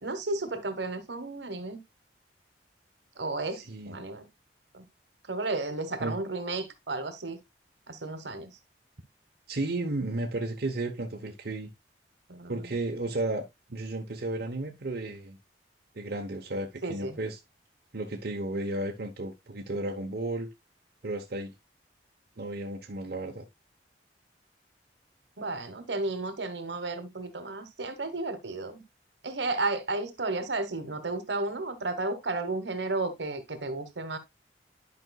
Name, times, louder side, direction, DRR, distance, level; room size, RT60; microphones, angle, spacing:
voice 1, 0.0-1.8 3.2-4.3 4.7-4.8 5.3-7.4 7.9-8.5 12.3-12.7 16.8-17.2 25.4-28.8 29.2-34.2, right 2 dB, 80° right, 1.3 m, -33 dB
voice 2, 3.5-4.0 6.0-6.2 9.5-11.7 12.5-15.4 15.9-17.4 17.9-20.5 21.0-21.5 22.4-23.4, right 2 dB, 60° right, 1.0 m, -33 dB
11.0 x 5.2 x 2.3 m
head